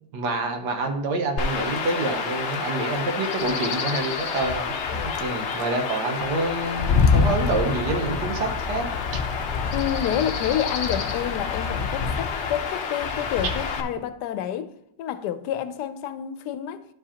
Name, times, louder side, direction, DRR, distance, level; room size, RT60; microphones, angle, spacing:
voice 1, 0.1-8.9 9.1-9.2, right 2 dB, 80° right, 1.6 m, -27 dB
Chirp tweet / Wind / Stream, 1.4-13.8, left 5 dB, 55° left, 0.8 m, -26 dB
voice 2, 9.7-16.9, left 10 dB, 80° left, 1.1 m, -29 dB
11.5 x 4.9 x 2.8 m
omnidirectional pair, 1.8 m